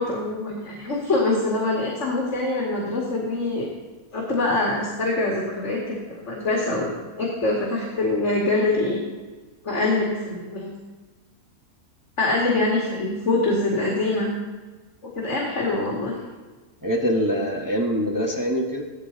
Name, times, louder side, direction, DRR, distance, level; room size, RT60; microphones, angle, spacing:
voice 1, 0.0-3.7 4.1-9.0 9.6-10.7 12.2-14.3 15.1-16.2, left 2 dB, 45° left, -3 dB, 2.6 m, -24 dB
voice 2, 16.8-18.8, equal, 10° right, -2 dB, 1.5 m, -24 dB
16.5 x 13.0 x 4.1 m, 1.3 s
omnidirectional pair, 1.7 m